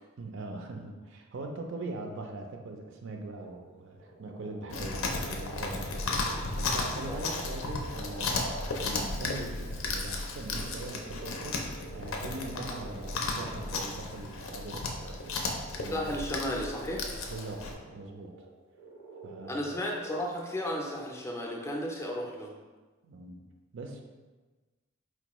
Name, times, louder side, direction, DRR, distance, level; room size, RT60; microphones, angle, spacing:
voice 1, 0.2-8.5 8.8-16.1 17.2-18.3 19.2-19.6 23.0-23.4 23.7-24.0, right 2 dB, 65° right, 3 dB, 0.4 m, -41 dB
sound 1, 3.4-9.4 10.0-21.3, right 2 dB, 90° right, 0.8 m, -49 dB
Chewing mastication, 4.7-17.7, left 3 dB, 80° left, 0.5 m, -34 dB
voice 2, 15.9-17.0 19.5-22.5, equal, 15° left, -1 dB, 0.4 m, -33 dB
4.4 x 2.2 x 2.9 m, 1.3 s
head